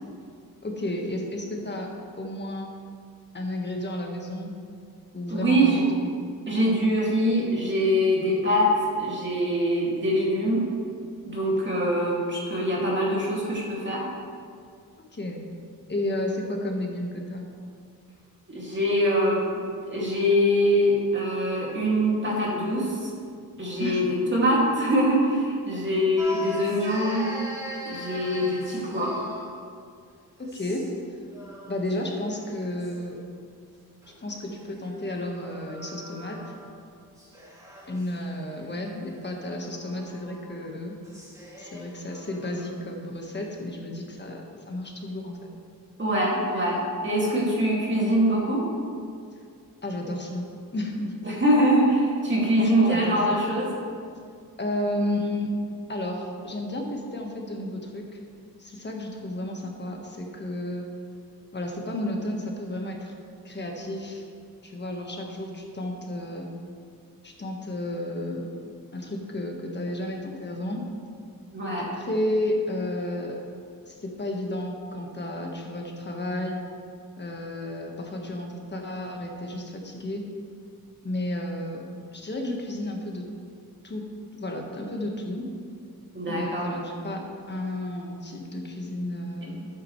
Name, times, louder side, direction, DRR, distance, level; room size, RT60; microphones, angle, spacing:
voice 1, 0.6-1.9 2.2-2.7 3.3-4.5 5.1-6.1 15.1-15.4 15.9-17.5 23.8-24.0 30.4-30.8 31.7-33.2 34.2-36.4 37.9-40.9 41.6-45.4 49.8-50.5 50.7-51.1 52.6-53.4 54.6-55.5 55.9-58.0 58.6-60.9 61.5-63.1 63.4-64.2 64.6-66.5 67.2-68.5 68.9-70.8 71.8-73.4 73.9-76.6 77.2-80.2 81.0-81.8 82.1-83.2 83.8-84.0 84.3-85.5 86.3-87.2 87.5-89.7, left 1 dB, 30° left, 1 dB, 1.5 m, -32 dB
voice 2, 5.3-5.8 6.5-8.7 9.0-10.6 11.3-14.0 18.5-23.1 23.6-27.3 27.9-29.1 46.0-48.6 51.2-53.7 71.5-71.9 86.1-86.7, equal, 30° right, -5 dB, 2.5 m, -23 dB
sound 1, 26.2-29.6 30.4-31.0 31.3-33.0 34.0-36.8 37.2-42.8, left 1 dB, 10° right, 2.5 m, -41 dB
12.0 x 8.7 x 3.3 m, 2.3 s
wide cardioid pair, 115°, 37 cm